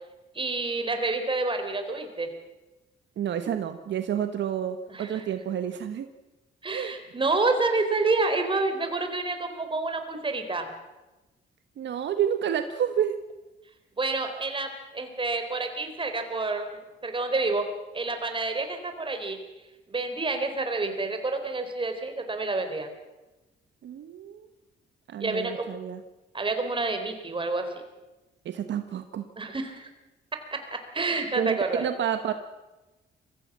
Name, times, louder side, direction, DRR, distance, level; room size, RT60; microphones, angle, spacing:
voice 1, 0.3-2.3 4.9-5.2 6.6-10.7 14.0-17.7 17.9-19.4 19.9-22.9 25.2-25.7 26.3-27.7 29.4-29.9 30.5-31.9, right 3 dB, 25° right, 6 dB, 3.9 m, -28 dB
voice 2, 3.2-6.1 6.7-6.9 11.8-13.2 23.8-24.5 25.1-26.0 28.4-29.2 31.4-32.3, right 9 dB, 65° right, 9 dB, 1.2 m, -29 dB
23.0 x 15.5 x 7.5 m, 1.1 s
cardioid pair, 90°, 20 cm